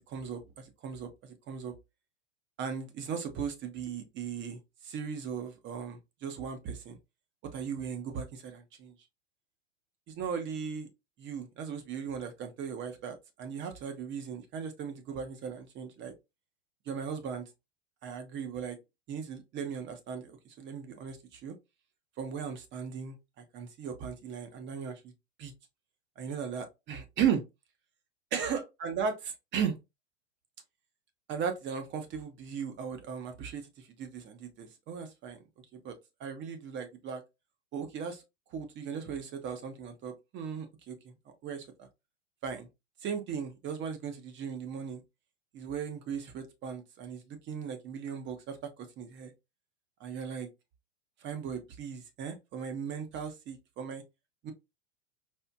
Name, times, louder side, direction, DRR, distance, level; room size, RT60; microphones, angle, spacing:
voice 1, 0.1-1.7 2.6-7.0 7.5-8.9 10.1-10.9 11.2-16.1 16.9-17.4 18.0-18.8 19.1-21.5 22.2-25.1 25.4-25.5 26.2-27.4 28.3-29.8 31.3-35.4 35.7-35.9 36.2-37.2 37.7-38.2 38.5-41.9 42.4-42.7 43.0-45.0 45.5-49.3 50.0-50.5 51.2-54.0 54.4-54.5, right 7 dB, 30° right, 0.8 m, -37 dB
4.4 x 2.4 x 2.3 m
hypercardioid pair, 110°, 37 cm